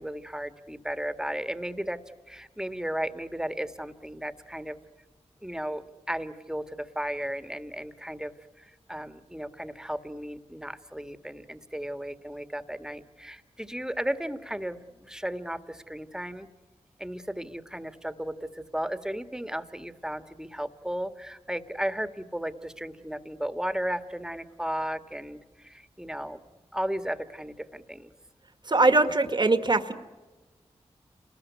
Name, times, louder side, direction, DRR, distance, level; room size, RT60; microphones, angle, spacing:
voice 1, 0.0-2.0 2.3-4.8 5.4-16.5 17.0-26.4 26.7-28.1, equal, 5° right, 9 dB, 1.8 m, -35 dB
voice 2, 28.7-29.9, right 2 dB, 40° right, 8 dB, 1.9 m, -22 dB
29.0 x 20.5 x 9.5 m, 1.2 s
cardioid pair, 50°, 11 cm